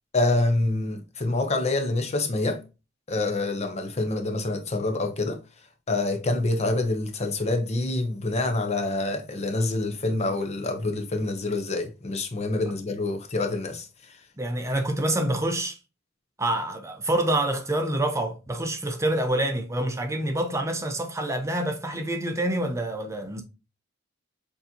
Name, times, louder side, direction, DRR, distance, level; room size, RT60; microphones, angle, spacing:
voice 1, 0.1-2.6 3.1-5.4 5.9-13.9, left 2 dB, 35° left, 0.7 m, -26 dB
voice 2, 14.4-15.8 16.4-23.4, right 1 dB, 15° right, 0.6 m, -27 dB
6.6 x 2.7 x 2.7 m
head